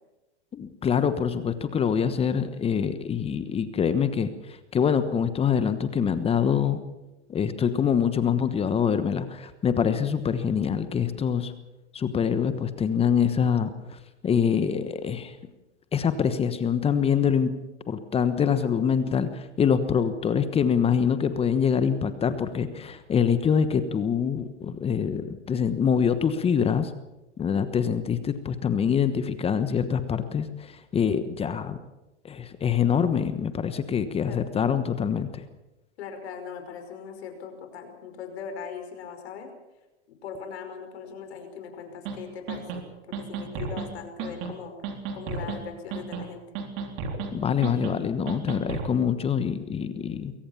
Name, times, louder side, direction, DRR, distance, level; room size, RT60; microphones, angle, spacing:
voice 1, 0.5-6.8 7.3-11.5 11.9-15.3 15.9-17.5 17.9-26.9 27.4-31.8 32.2-35.4 47.3-50.3, left 7 dB, 15° left, 11 dB, 1.2 m, -25 dB
voice 2, 27.4-27.7 34.3-34.4 36.0-39.5 40.1-46.4, left 6 dB, 65° left, 6 dB, 5.4 m, -40 dB
sound 1, 42.1-42.2 42.5-42.8 43.1-43.9 44.2-44.5 44.8-45.6 45.9-46.3 46.6-47.3 47.6-48.0 48.3-48.9, right 5 dB, 40° right, 3.6 m, -33 dB
22.5 x 17.5 x 7.2 m, 1.0 s
hypercardioid pair, 130°, 35 cm